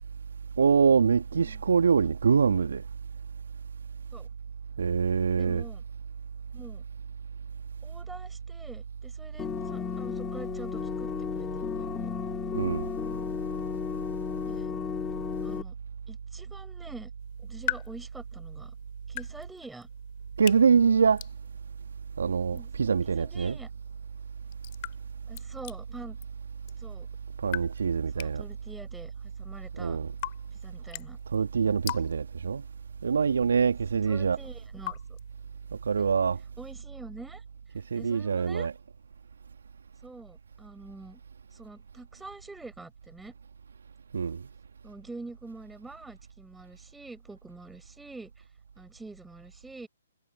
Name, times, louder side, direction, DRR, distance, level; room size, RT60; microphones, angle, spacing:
voice 1, 0.6-2.8 4.8-5.7 12.5-12.9 20.4-21.3 22.2-23.6 27.4-28.5 29.8-30.1 31.3-32.6 33.0-34.4 35.7-36.4 37.9-38.7 44.1-44.5, right 6 dB, 65° right, 1.9 m, -24 dB
voice 2, 5.4-5.8 6.5-6.8 7.8-11.5 11.8-12.1 14.4-14.8 15.4-15.8 16.1-17.1 17.4-18.7 19.1-19.9 22.5-23.7 25.3-26.2 26.8-27.1 28.1-29.1 29.4-30.0 30.5-31.2 34.0-35.2 36.0-36.1 36.6-37.4 37.9-38.7 40.0-41.2 41.5-43.3 44.8-48.4 48.8-49.9, right 3 dB, 5° right, 5.6 m, -46 dB
sound 1, 9.4-15.6, left 9 dB, 15° left, 2.6 m, -34 dB
sound 2, 17.2-36.1, left 17 dB, 40° left, 4.1 m, -43 dB
figure-of-eight pair, 130°, 0 cm